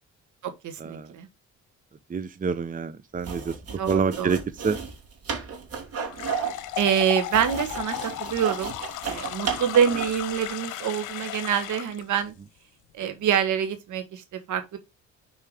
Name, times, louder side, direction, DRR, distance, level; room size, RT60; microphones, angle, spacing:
voice 1, 0.4-1.3 3.7-4.4 6.8-8.8 9.0-12.3 12.9-14.8, right 8 dB, 75° right, 1.5 m, -26 dB
voice 2, 2.1-3.5 3.9-4.4 4.6-4.8, right 5 dB, 30° right, 0.8 m, -27 dB
sound 1, 3.2-10.2, right 6 dB, 55° right, 3.1 m, -33 dB
sound 2, 6.1-12.0, left 13 dB, 90° left, 0.9 m, -35 dB
5.6 x 4.7 x 4.9 m
cardioid pair, 90°, 30 cm